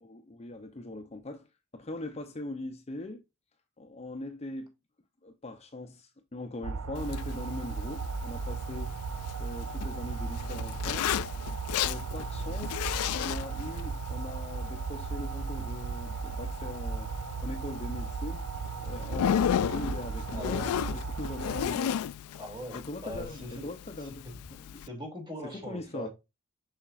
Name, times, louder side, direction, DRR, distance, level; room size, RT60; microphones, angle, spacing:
voice 1, 0.0-1.5 1.7-3.2 3.8-4.7 5.2-8.9 9.4-11.2 11.8-12.8 13.1-17.1 17.4-18.4 18.8-22.1 22.7-24.3 24.6-24.8 25.4-26.1, left 2 dB, 30° left, 0.7 m, -41 dB
sound 1, 6.6-21.7, right 4 dB, 65° right, 0.6 m, -36 dB
Zipper (clothing), 6.9-24.9, left 9 dB, 85° left, 0.3 m, -35 dB
voice 2, 20.3-21.0 22.3-23.7 24.0-24.1 24.8-26.1, equal, 20° right, 2.7 m, -41 dB
7.1 x 5.7 x 2.5 m
head